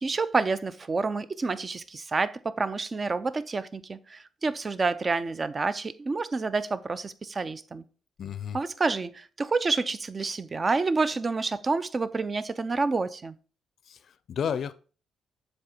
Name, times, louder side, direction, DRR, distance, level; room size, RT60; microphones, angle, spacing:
voice 1, 0.0-7.8 8.5-13.3, right 4 dB, 30° right, 0.5 m, -28 dB
voice 2, 8.2-8.6 13.9-14.7, left 7 dB, 60° left, 0.4 m, -32 dB
7.6 x 3.4 x 4.3 m
cardioid pair, 90°, 0 cm